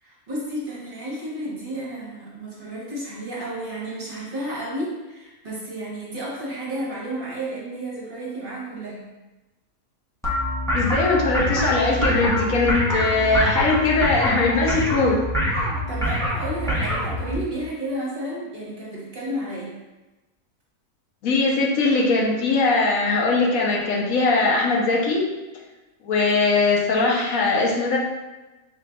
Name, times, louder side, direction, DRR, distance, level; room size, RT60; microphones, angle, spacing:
voice 1, 0.0-9.1 15.5-19.7, right 1 dB, 40° right, -6 dB, 1.0 m, -32 dB
sound 1, 10.2-17.3, equal, 5° left, 0.5 m, -25 dB
voice 2, 10.7-15.2 21.2-25.3 26.0-28.0, left 3 dB, 75° left, -2 dB, 1.2 m, -20 dB
4.8 x 3.7 x 2.3 m, 1.1 s
omnidirectional pair, 1.5 m